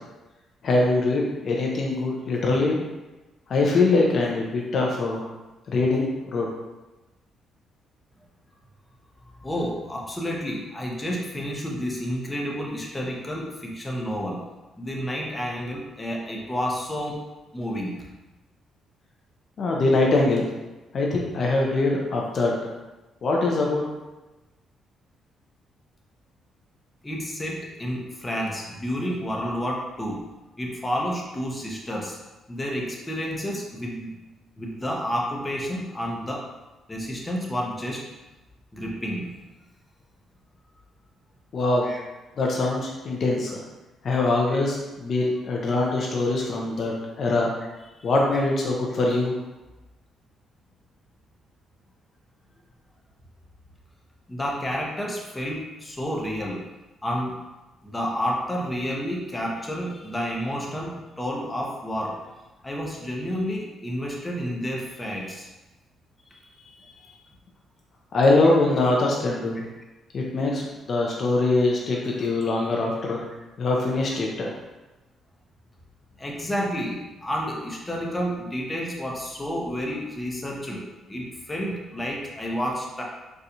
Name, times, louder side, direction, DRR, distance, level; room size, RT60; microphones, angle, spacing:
voice 1, 0.6-2.8 3.5-5.2 5.7-6.5 19.6-20.5 20.9-22.5 23.2-23.8 41.5-41.9 42.4-43.5 44.0-46.9 47.2-47.5 48.0-49.3 68.1-69.6 70.1-73.2 73.6-74.5, left 2 dB, 55° left, -1 dB, 0.5 m, -23 dB
voice 2, 9.4-14.4 14.8-17.2 17.5-18.0 27.0-30.2 30.6-32.2 32.5-34.1 34.6-36.4 36.9-38.1 38.7-39.3 41.8-42.0 46.0-46.1 46.4-46.5 48.0-48.1 54.3-56.6 57.0-57.4 57.8-62.2 62.6-65.5 66.3-67.2 70.4-70.5 71.9-72.0 76.2-83.0, equal, 15° left, -2 dB, 0.7 m, -30 dB
4.2 x 2.3 x 2.7 m, 1.1 s
cardioid pair, 90°, 0 cm